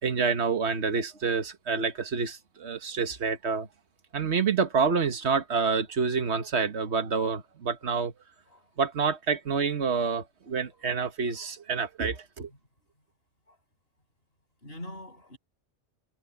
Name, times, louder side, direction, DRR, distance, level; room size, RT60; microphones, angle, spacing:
voice 1, 0.0-3.7 4.1-8.1 8.8-12.5, right 5 dB, 65° right, 1.7 m, -28 dB
voice 2, 14.6-15.4, left 1 dB, 55° left, 7.5 m, -44 dB
omnidirectional pair, 1.2 m